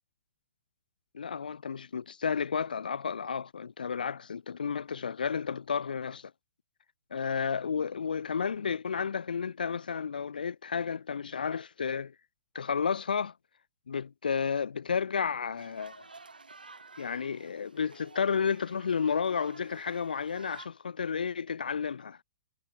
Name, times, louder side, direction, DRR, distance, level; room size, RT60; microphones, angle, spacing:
voice 1, 1.1-6.3 7.1-12.1 12.5-13.3 13.9-16.0 17.0-22.2, left 6 dB, 75° left, 0.4 m, -32 dB
sound 1, 15.6-20.7, right 3 dB, 85° right, 3.7 m, -52 dB
figure-of-eight pair, 115°, 5 cm